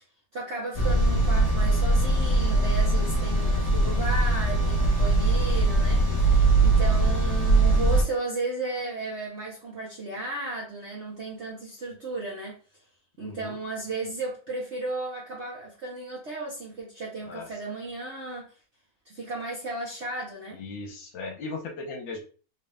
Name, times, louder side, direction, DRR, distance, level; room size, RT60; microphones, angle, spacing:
voice 1, 0.3-12.6 13.2-18.5 19.1-20.6, right 2 dB, 50° right, 0.8 m, -34 dB
sound 1, 0.7-8.0, right 2 dB, 20° left, 0.6 m, -21 dB
voice 2, 13.2-13.6 17.3-17.5 20.5-22.2, left 3 dB, 75° left, 1.5 m, -37 dB
4.0 x 2.4 x 3.2 m
omnidirectional pair, 2.2 m